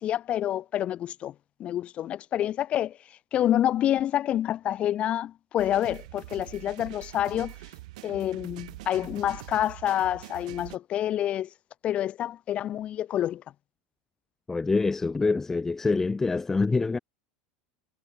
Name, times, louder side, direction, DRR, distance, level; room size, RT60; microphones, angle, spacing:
voice 1, 0.0-1.3 1.6-3.0 3.3-7.5 8.0-11.5 11.8-13.4, left 11 dB, 35° left, 1.0 m, -28 dB
sound 1, 5.6-10.8, right 19 dB, 80° right, 6.4 m, -44 dB
voice 2, 14.5-17.0, left 3 dB, 10° left, 0.5 m, -25 dB
supercardioid pair, 150°, 4 cm